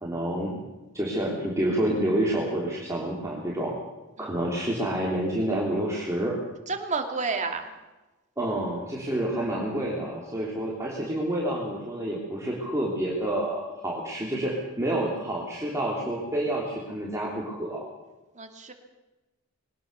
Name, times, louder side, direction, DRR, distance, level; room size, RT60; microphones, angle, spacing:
voice 1, 0.0-0.6 0.9-3.7 4.2-6.4 8.4-17.8, right 1 dB, 15° right, -4 dB, 3.4 m, -28 dB
voice 2, 6.7-7.7 18.3-18.7, right 4 dB, 35° right, 5 dB, 2.6 m, -30 dB
21.5 x 19.5 x 6.9 m, 1.1 s
head